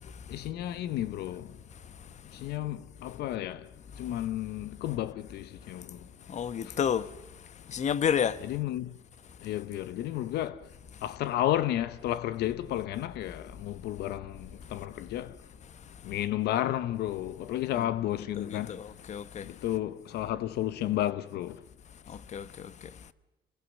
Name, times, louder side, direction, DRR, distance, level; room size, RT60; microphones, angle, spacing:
voice 1, 0.3-1.5 2.3-3.7 4.0-6.0 6.6-6.7 8.5-8.9 9.4-10.6 11.0-15.4 16.0-18.8 19.4-21.6, left 13 dB, 75° left, 0.8 m, -32 dB
voice 2, 6.3-7.1 7.7-8.4 17.7-17.9 18.2-19.5 22.1-22.7, left 8 dB, 45° left, 1.1 m, -31 dB
27.5 x 21.0 x 7.3 m
cardioid pair, 110°, 17 cm